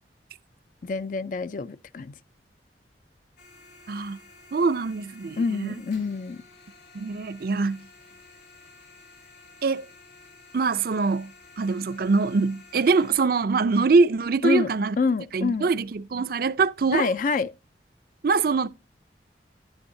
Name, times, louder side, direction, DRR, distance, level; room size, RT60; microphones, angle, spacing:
voice 1, 0.8-2.1 5.4-6.4 14.4-14.7 15.0-15.7 16.9-17.5, left 4 dB, 45° left, 0.4 m, -26 dB
sound 1, 3.4-13.1, left 3 dB, 80° left, 4.7 m, -52 dB
voice 2, 3.9-4.2 4.5-5.8 6.9-7.8 9.6-9.9 10.5-11.3 11.6-15.0 15.3-17.1 18.2-18.7, right 4 dB, 55° right, 0.5 m, -23 dB
11.5 x 9.7 x 2.7 m
head